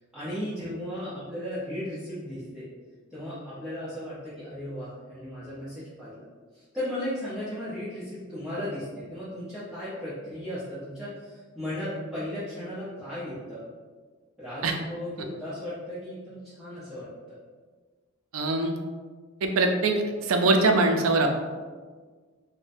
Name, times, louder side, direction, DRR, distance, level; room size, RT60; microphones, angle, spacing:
voice 1, 0.1-2.6 3.1-6.2 6.5-13.6 14.4-17.1, left 1 dB, ahead, -13 dB, 0.7 m, -36 dB
voice 2, 18.3-18.7 19.4-21.3, right 3 dB, 75° right, 4 dB, 0.4 m, -22 dB
3.9 x 2.1 x 2.5 m, 1.5 s
head